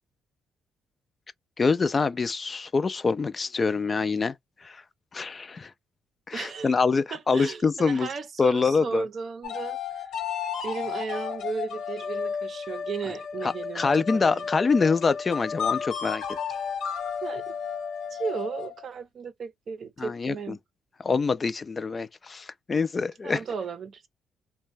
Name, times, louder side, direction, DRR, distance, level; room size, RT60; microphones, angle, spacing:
voice 1, 1.6-4.3 4.6-4.8 5.1-5.7 6.3-8.1 8.4-9.1 13.4-16.2 20.0-20.3 21.0-23.4, left 4 dB, 35° left, 0.3 m, -25 dB
voice 2, 6.3-6.8 7.1-9.8 10.6-14.5 17.2-17.6 18.1-20.6 23.2-24.1, right 5 dB, 55° right, 0.5 m, -35 dB
sound 1, 9.4-18.9, left 7 dB, 75° left, 1.0 m, -33 dB
2.5 x 2.2 x 3.2 m
cardioid pair, 90°, 0 cm